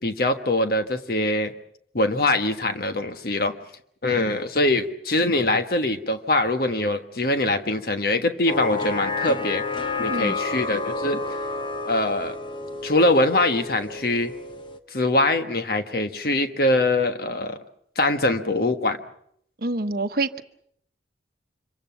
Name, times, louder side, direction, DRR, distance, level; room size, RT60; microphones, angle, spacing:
voice 1, 0.0-1.5 1.9-3.5 4.0-9.6 10.0-11.2 11.8-12.4 12.8-14.3 14.9-17.6 18.0-19.0, left 2 dB, 55° left, 8 dB, 1.3 m, -23 dB
sound 1, 8.5-14.8, left 3 dB, 25° left, 1.0 m, -30 dB
voice 2, 19.6-20.4, right 2 dB, 50° right, 10 dB, 1.0 m, -26 dB
25.5 x 23.5 x 5.8 m, 0.69 s
head